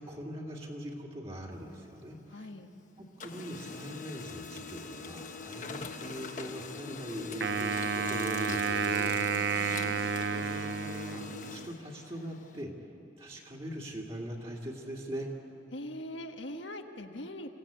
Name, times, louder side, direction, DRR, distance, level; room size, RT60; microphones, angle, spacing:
voice 1, 0.0-2.5 3.0-12.9 13.2-15.3, equal, 30° right, -3 dB, 2.2 m, -42 dB
Printer, 1.5-2.8 3.1-12.6, left 4 dB, 40° left, 1.1 m, -43 dB
voice 2, 2.3-2.7 9.2-10.0 15.7-17.5, left 1 dB, 80° left, 5 dB, 1.4 m, -42 dB
Wind instrument woodwind instrument, 7.4-11.7, right 5 dB, 65° right, 0.6 m, -31 dB
28.5 x 16.0 x 8.8 m, 3.0 s
head